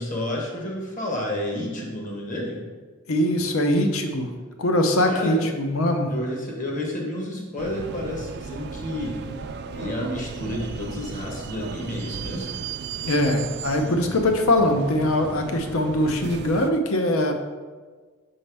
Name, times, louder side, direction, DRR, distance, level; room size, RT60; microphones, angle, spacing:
voice 1, 0.0-2.6 5.1-5.4 6.1-9.2 9.7-12.6, left 1 dB, 35° left, -2 dB, 1.1 m, -30 dB
voice 2, 3.1-4.3 4.6-6.1 13.0-17.3, left 1 dB, 70° left, 5 dB, 0.6 m, -22 dB
sound 1, 7.6-16.7, right 5 dB, 50° right, 0.3 m, -36 dB
5.5 x 5.2 x 3.4 m, 1.4 s
head